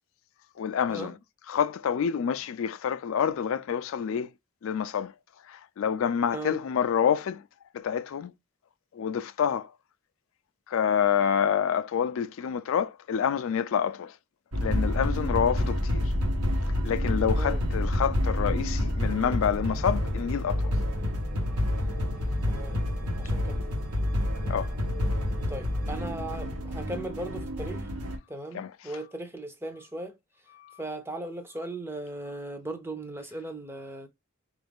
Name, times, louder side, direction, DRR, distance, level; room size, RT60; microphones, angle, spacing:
voice 1, 0.6-1.1 1.5-4.3 4.6-5.1 5.5-7.4 7.7-8.3 8.9-9.7 10.7-14.1 14.6-16.1 16.8-20.8 24.5-24.7 28.5-28.7 30.6-30.8, left 8 dB, 60° left, 0.3 m, -27 dB
sound 1, 14.5-28.2, left 1 dB, 85° right, 1.0 m, -28 dB
voice 2, 17.4-17.7 22.5-22.8 23.2-23.6 25.5-27.9 28.3-30.2 30.8-34.1, right 1 dB, 10° right, 0.5 m, -38 dB
4.1 x 2.4 x 3.4 m
head